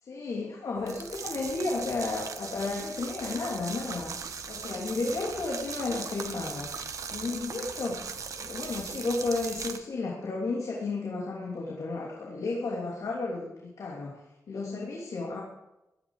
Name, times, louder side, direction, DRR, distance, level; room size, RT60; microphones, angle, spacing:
voice 1, 0.0-4.1 4.5-6.7 7.1-8.0 8.3-14.2 14.5-15.4, left 3 dB, 90° left, -2 dB, 3.0 m, -33 dB
sound 1, 0.8-9.8, right 5 dB, 80° right, 1.3 m, -39 dB
16.5 x 12.5 x 5.0 m, 0.94 s
wide cardioid pair, 155°, 6 cm